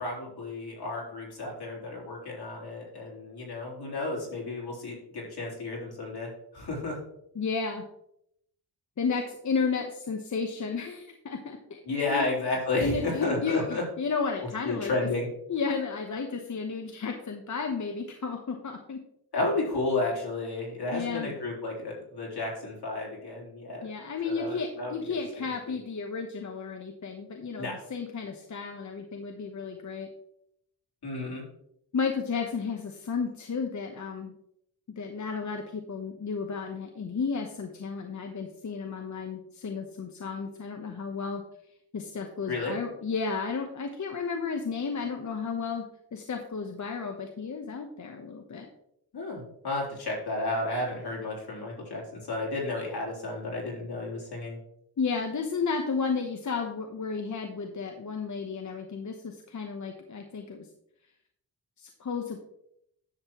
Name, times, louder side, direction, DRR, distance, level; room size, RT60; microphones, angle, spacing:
voice 1, 0.0-7.0 11.9-13.8 14.6-15.3 19.3-23.9 24.2-25.1 25.7-25.8 27.6-27.7 31.0-31.4 42.5-42.7 49.1-54.6, left 2 dB, 70° left, -3 dB, 3.5 m, -32 dB
voice 2, 7.3-7.8 9.0-11.8 12.0-12.3 12.8-14.9 15.5-19.0 20.9-21.3 23.8-30.1 31.9-34.4 35.0-41.4 41.9-45.8 46.1-48.7 55.0-60.7 61.8-62.4, left 5 dB, 45° left, 4 dB, 1.0 m, -33 dB
10.5 x 7.4 x 3.1 m, 0.76 s
wide cardioid pair, 105°, 40 cm